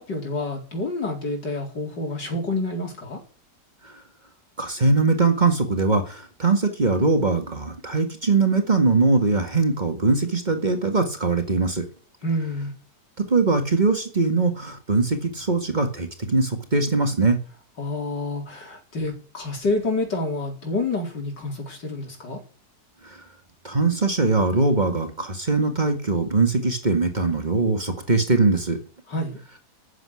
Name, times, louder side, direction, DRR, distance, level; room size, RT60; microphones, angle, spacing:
voice 1, 0.0-3.2 12.2-12.7 17.8-22.4 29.1-29.4, left 2 dB, 90° left, 2 dB, 4.8 m, -28 dB
voice 2, 4.6-11.9 13.2-17.4 23.6-28.8, right 3 dB, 25° right, 5 dB, 1.9 m, -21 dB
15.0 x 7.5 x 9.7 m, 0.41 s
omnidirectional pair, 1.8 m